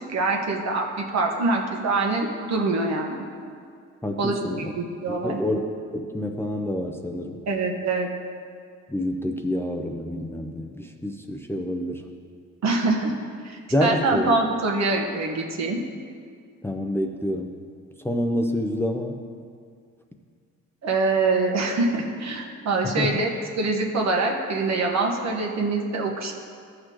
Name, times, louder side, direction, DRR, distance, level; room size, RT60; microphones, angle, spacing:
voice 1, 0.1-3.2 4.2-5.4 7.5-8.1 12.6-13.1 13.4-15.8 20.8-23.3 23.6-26.3, right 3 dB, 60° right, 1 dB, 1.4 m, -24 dB
voice 2, 4.0-4.7 5.1-5.6 5.9-7.4 8.9-12.0 13.7-14.4 16.6-17.5 18.0-19.2 23.0-23.1, left 1 dB, 10° left, 3 dB, 0.6 m, -27 dB
14.5 x 6.5 x 3.1 m, 2.2 s
cardioid pair, 90°, 30 cm